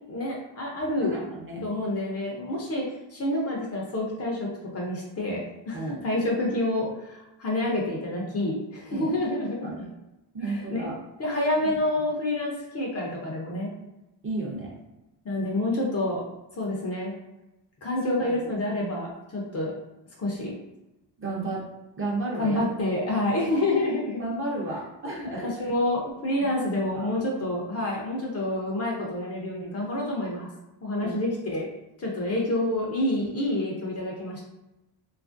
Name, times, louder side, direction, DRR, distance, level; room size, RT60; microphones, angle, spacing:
voice 1, 0.1-1.1 1.6-2.8 3.1-4.5 4.7-9.9 10.4-10.9 11.2-13.7 15.2-16.2 16.6-17.1 17.8-19.7 20.2-20.5 22.4-24.2 25.4-30.5 30.8-31.7 32.0-34.4, left 1 dB, 35° left, -2 dB, 0.6 m, -28 dB
voice 2, 1.0-1.7 5.7-6.0 6.4-6.5 8.9-9.1 9.6-9.8 10.3-10.9 11.6-11.8 14.2-14.8 18.0-18.3 21.2-21.7 22.0-22.6 24.2-25.7 26.6-27.1 31.0-31.2, right 2 dB, 30° right, -3 dB, 0.7 m, -33 dB
3.0 x 2.4 x 2.5 m, 0.97 s
cardioid pair, 120°, 45 cm